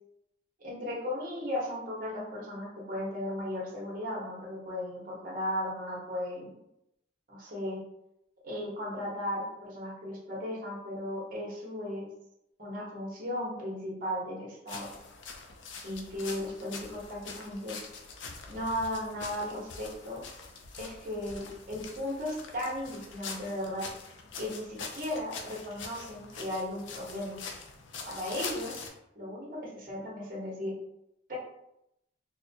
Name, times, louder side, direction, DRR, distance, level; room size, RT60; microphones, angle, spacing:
voice 1, 0.6-6.5 7.3-7.8 8.4-12.1 12.6-14.9 15.8-17.8 18.5-20.2 20.8-23.8 24.4-27.4 28.0-28.8 29.1-30.7 31.3-31.4, left 1 dB, 45° right, -4 dB, 1.3 m, -36 dB
sound 1, 14.7-28.9, left 4 dB, 80° left, 0.5 m, -44 dB
4.2 x 2.2 x 2.8 m, 0.82 s
head